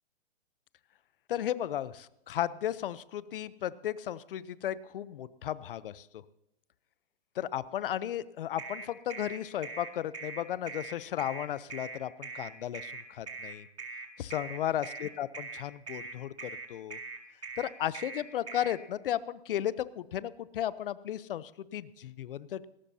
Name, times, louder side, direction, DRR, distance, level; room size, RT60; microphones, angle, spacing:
voice 1, 1.3-6.2 7.3-13.7 14.2-17.0 17.6-22.7, left 11 dB, 55° left, 17 dB, 0.8 m, -35 dB
sound 1, 8.6-18.8, right 4 dB, 85° right, 3.9 m, -41 dB
19.5 x 18.0 x 2.8 m, 0.86 s
hypercardioid pair, 145°, 32 cm